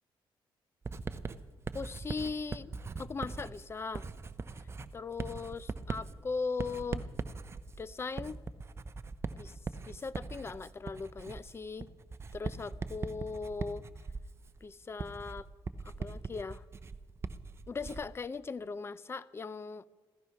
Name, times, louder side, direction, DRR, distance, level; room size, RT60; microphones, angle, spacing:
Writing, 0.9-18.2, right 4 dB, 30° right, 0.7 m, -41 dB
voice 1, 1.7-4.1 4.9-7.1 7.8-8.4 9.4-9.5 9.8-11.9 12.3-13.8 14.6-15.5 15.8-16.6 17.7-19.8, left 4 dB, 25° left, 17 dB, 0.5 m, -39 dB
15.5 x 15.0 x 5.8 m, 1.4 s
cardioid pair, 115°, 9 cm